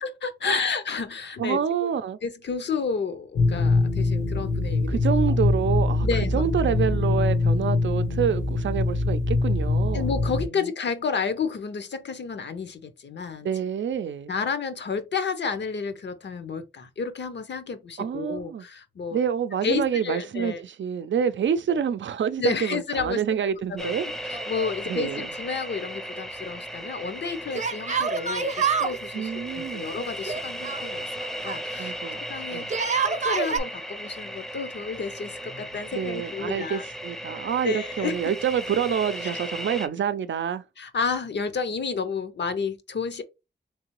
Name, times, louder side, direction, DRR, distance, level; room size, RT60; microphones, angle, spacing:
voice 1, 0.0-1.9 2.2-5.0 6.0-6.4 9.9-13.5 14.3-19.2 19.6-20.6 22.4-23.2 23.7-24.0 24.5-31.1 31.4-31.9 32.3-32.7 33.0-36.8 37.6-38.1 39.2-39.4 40.8-43.2, left 5 dB, 70° left, 0.7 m, -31 dB
voice 2, 1.4-2.2 4.9-6.1 6.3-10.1 10.4-10.7 13.4-14.3 18.0-18.7 19.1-24.3 24.9-25.3 29.1-29.9 31.8-32.2 32.5-32.7 35.9-40.6, right 8 dB, 85° right, 0.4 m, -27 dB
sound 1, 3.4-10.5, left 3 dB, 90° left, 1.0 m, -23 dB
sound 2, 23.8-39.9, equal, ahead, 0.5 m, -36 dB
Yell, 24.3-25.2 25.4-25.5 27.5-29.0 30.2-31.6 32.6-33.6, right 6 dB, 40° right, 0.7 m, -27 dB
3.7 x 3.2 x 3.0 m
wide cardioid pair, 120°, 19 cm